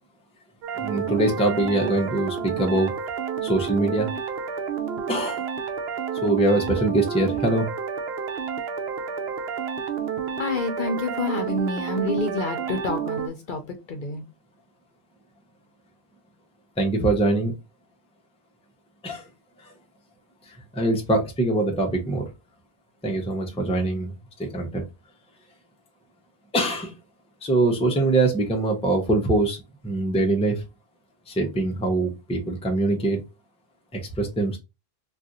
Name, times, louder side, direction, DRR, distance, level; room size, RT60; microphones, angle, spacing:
sound 1, 0.6-13.3, right 7 dB, 75° right, 0.8 m, -30 dB
voice 1, 0.8-2.9 3.4-4.1 5.1-5.4 6.2-7.7 16.8-17.5 19.0-19.2 19.6-19.7 20.7-22.3 23.0-24.1 24.4-24.8 26.5-26.9 27.4-29.6 29.8-30.6 31.3-33.2 33.9-34.6, right 2 dB, 5° left, 0.5 m, -23 dB
voice 2, 10.4-13.6 13.9-14.2, left 2 dB, 60° left, 0.7 m, -28 dB
2.5 x 2.4 x 4.0 m
omnidirectional pair, 1.1 m